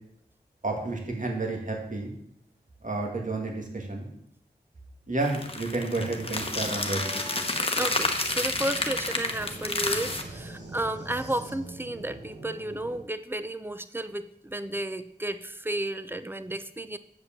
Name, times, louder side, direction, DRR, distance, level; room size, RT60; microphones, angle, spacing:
voice 1, 0.6-2.1 2.8-4.1 5.1-7.2, right 2 dB, 45° right, 1 dB, 2.3 m, -31 dB
sound 1, 5.2-10.2, left 2 dB, 30° left, 1.2 m, -30 dB
sound 2, 6.0-13.0, right 2 dB, 80° right, 1.8 m, -43 dB
voice 2, 7.8-17.0, right 1 dB, 10° right, 12 dB, 0.6 m, -33 dB
7.8 x 5.2 x 7.4 m, 0.71 s
wide cardioid pair, 60°, 18 cm